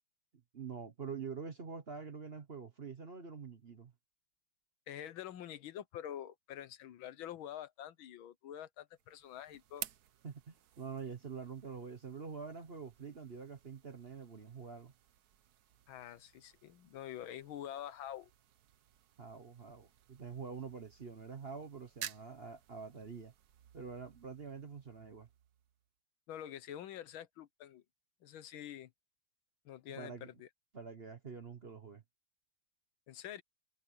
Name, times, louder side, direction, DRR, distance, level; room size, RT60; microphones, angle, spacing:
voice 1, 0.5-3.9 10.2-14.9 19.2-23.3 23.7-25.3 29.9-30.3 30.7-32.0, right 5 dB, 40° right, 1.1 m, -46 dB
voice 2, 4.9-9.9 15.9-18.3 26.3-27.8 28.2-28.9 29.7-30.5 33.1-33.4, left 11 dB, 85° left, 1.8 m, -46 dB
sound 1, 8.9-25.9, right 10 dB, 60° right, 1.2 m, -54 dB
omnidirectional pair, 2.1 m